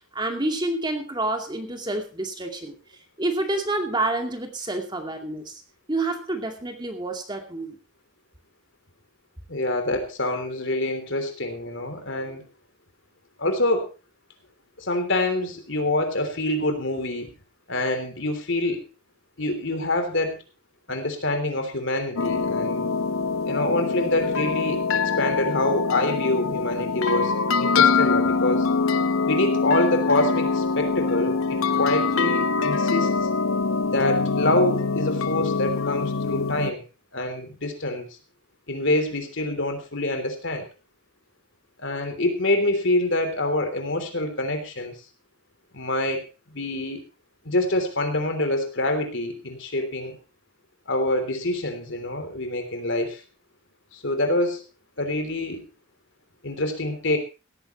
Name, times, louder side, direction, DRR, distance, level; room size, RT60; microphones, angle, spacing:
voice 1, 0.1-2.7 3.2-5.6 5.9-7.8, right 2 dB, 20° right, 4 dB, 2.4 m, -28 dB
voice 2, 9.5-12.4 13.4-13.9 14.8-17.3 17.7-18.9 19.4-20.4 20.9-22.9 23.4-27.3 27.6-28.7 29.2-33.2 33.9-36.8 37.1-38.1 38.7-40.7 41.8-44.9 45.7-47.0 47.4-50.2 50.9-53.2 53.9-54.6 55.0-55.7 56.4-57.2, left 1 dB, 60° left, 7 dB, 3.4 m, -26 dB
sound 1, 22.2-36.7, left 4 dB, 80° left, 0.8 m, -24 dB
17.5 x 14.5 x 3.1 m, 0.30 s
head